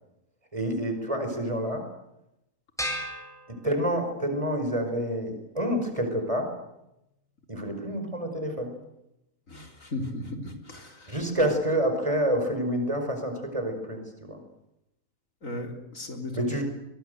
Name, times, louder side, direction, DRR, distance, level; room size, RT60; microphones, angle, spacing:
voice 1, 0.5-1.9 3.5-6.6 7.5-8.7 11.1-14.4 16.3-16.6, equal, 25° right, 5 dB, 5.2 m, -28 dB
sound 1, 2.8-4.3, equal, ahead, 7.4 m, -35 dB
voice 2, 9.5-11.1 15.4-16.5, left 2 dB, 70° left, 4 dB, 4.0 m, -36 dB
24.5 x 22.5 x 8.0 m, 0.86 s
omnidirectional pair, 1.5 m